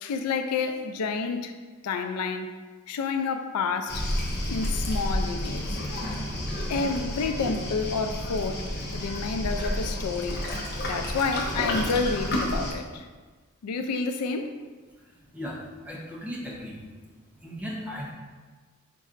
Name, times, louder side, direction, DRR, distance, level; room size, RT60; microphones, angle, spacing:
voice 1, 0.0-1.5 1.8-2.5 2.9-4.0 4.5-5.7 6.7-8.6 8.9-10.4 10.9-13.1 13.6-14.5, left 4 dB, 90° left, 7 dB, 0.4 m, -29 dB
Waves surf, 3.9-12.7, left 1 dB, 50° left, 0.8 m, -30 dB
voice 2, 15.8-16.7 17.4-18.1, equal, 5° right, -5 dB, 0.8 m, -36 dB
5.3 x 4.1 x 2.5 m, 1.4 s
head